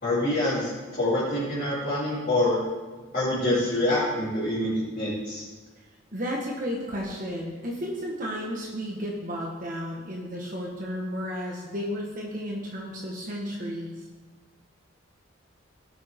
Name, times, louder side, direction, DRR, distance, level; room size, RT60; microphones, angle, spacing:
voice 1, 0.0-2.6 3.1-5.4, left 1 dB, 40° left, -12 dB, 3.4 m, -26 dB
voice 2, 6.1-14.1, equal, 40° right, -2 dB, 1.3 m, -33 dB
17.5 x 6.1 x 3.6 m, 1.3 s
head